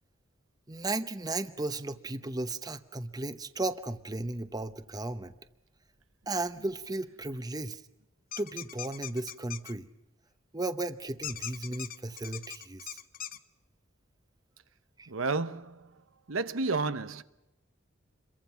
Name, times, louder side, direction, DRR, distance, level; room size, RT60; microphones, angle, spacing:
voice 1, 0.7-5.3 6.3-7.8 8.4-9.9 10.5-13.0 15.0-15.1, right 2 dB, 20° right, 0.9 m, -35 dB
sound 1, 8.3-9.7 11.2-13.4, left 11 dB, 45° left, 1.0 m, -40 dB
voice 2, 15.1-15.9 16.3-17.2, right 3 dB, 85° right, 1.0 m, -31 dB
28.0 x 23.0 x 5.8 m
head